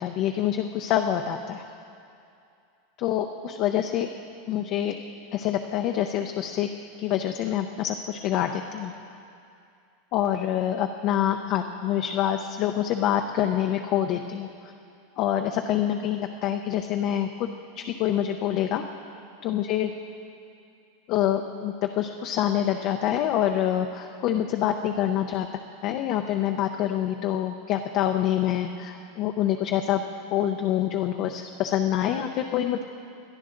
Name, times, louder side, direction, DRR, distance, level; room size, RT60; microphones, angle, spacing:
voice 1, 0.0-1.6 3.0-4.1 4.5-5.0 5.3-6.7 7.0-8.9 10.1-14.7 15.2-17.5 17.8-18.8 19.4-19.9 21.1-25.5 25.8-30.0 30.3-32.8, left 11 dB, 40° left, 4 dB, 0.6 m, -26 dB
21.5 x 12.5 x 3.8 m, 2.5 s
supercardioid pair, 155°, 0 cm